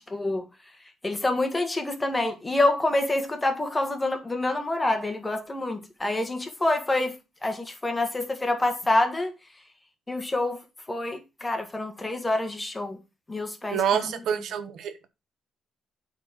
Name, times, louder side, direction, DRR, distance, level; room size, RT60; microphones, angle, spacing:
voice 1, 0.1-0.4 1.0-7.2 7.4-9.3 10.1-13.0 13.3-14.1, left 2 dB, 15° left, 1.8 m, -27 dB
voice 2, 13.7-15.1, right 8 dB, 75° right, 1.1 m, -27 dB
8.2 x 4.3 x 5.9 m
cardioid pair, 90°, 0 cm